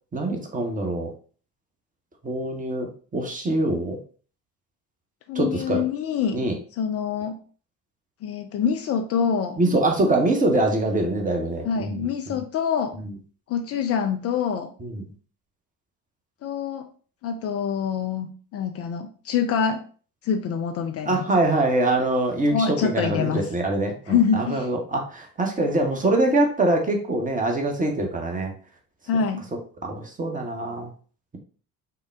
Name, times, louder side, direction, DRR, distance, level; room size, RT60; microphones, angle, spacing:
voice 1, 0.1-1.1 2.2-4.0 5.3-5.8 6.3-6.6 9.6-12.4 13.0-13.1 14.8-15.0 21.1-28.5 29.5-30.9, right 2 dB, 15° right, 3 dB, 1.0 m, -24 dB
voice 2, 5.3-6.4 6.8-7.4 8.2-9.6 11.7-13.0 13.5-14.7 16.4-16.9 17.2-19.8 20.2-21.3 22.5-23.4 24.1-24.7 29.1-29.4, left 7 dB, 35° left, 5 dB, 0.4 m, -25 dB
5.6 x 2.2 x 3.5 m, 0.42 s
figure-of-eight pair, 55°, 45 cm